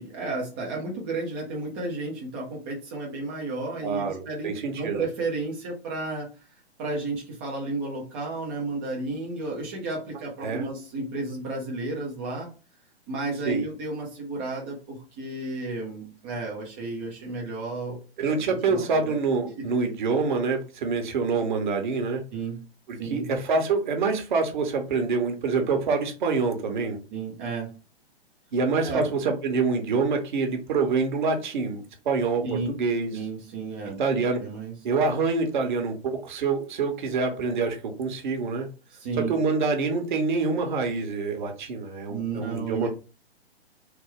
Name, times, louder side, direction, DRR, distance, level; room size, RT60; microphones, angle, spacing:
voice 1, 0.0-6.3 6.8-12.5 13.1-18.4 18.7-19.1 19.6-19.7 22.3-22.7 23.0-23.3 27.1-27.7 28.8-29.1 32.4-32.7 33.1-34.7 38.9-39.3 42.1-42.9, right 3 dB, 10° right, -3 dB, 0.3 m, -32 dB
voice 2, 3.8-5.0 10.4-10.6 13.5-13.6 18.2-22.2 22.9-27.0 28.5-33.1 34.0-34.4 34.8-38.7 39.1-42.9, right 4 dB, 50° right, 5 dB, 0.9 m, -26 dB
3.3 x 2.1 x 3.5 m, 0.32 s
figure-of-eight pair, 120°, 32 cm